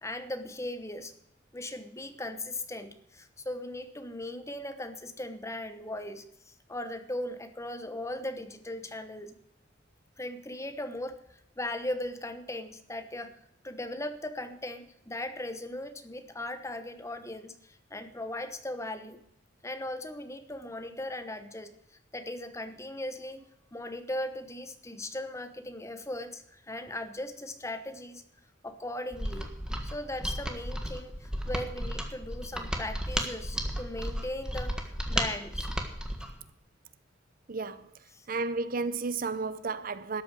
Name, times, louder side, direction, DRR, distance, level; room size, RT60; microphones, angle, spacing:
voice 1, 0.0-1.1 1.5-9.3 10.2-13.3 13.6-19.2 19.6-23.4 23.7-28.2 28.6-29.5 29.8-35.7 38.1-38.3, left 1 dB, 15° left, 1.1 m, -38 dB
Mechanisms, 29.1-36.3, equal, 5° right, 1.6 m, -33 dB
voice 2, 37.5-37.9 38.3-40.2, right 4 dB, 45° right, 0.7 m, -32 dB
13.0 x 8.5 x 7.5 m
head